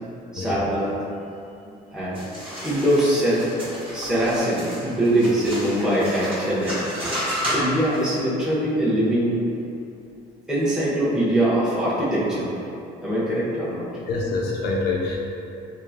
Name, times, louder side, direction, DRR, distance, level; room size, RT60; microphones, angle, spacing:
voice 1, 0.3-0.9 1.9-2.2 2.6-3.4 3.9-6.8 7.5-9.4 10.5-12.6 13.0-13.8, right 1 dB, 5° right, -10 dB, 0.7 m, -22 dB
sound 1, 2.1-8.1, equal, 30° right, 1.1 m, -31 dB
voice 2, 14.1-15.2, left 3 dB, 75° left, -3 dB, 0.4 m, -25 dB
2.9 x 2.0 x 2.3 m, 2.7 s
cardioid pair, 110°, 17 cm